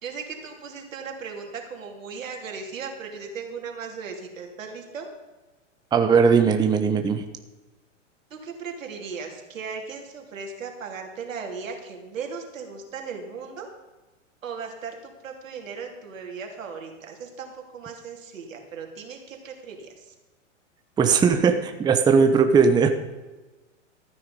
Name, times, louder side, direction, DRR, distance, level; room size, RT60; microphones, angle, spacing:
voice 1, 0.0-5.1 8.3-13.7 14.4-20.1, right 5 dB, 85° right, 2 dB, 3.2 m, -37 dB
voice 2, 5.9-7.2 21.0-22.9, right 5 dB, 10° right, 6 dB, 0.7 m, -19 dB
14.5 x 9.5 x 5.2 m, 1.2 s
hypercardioid pair, 135°, 38 cm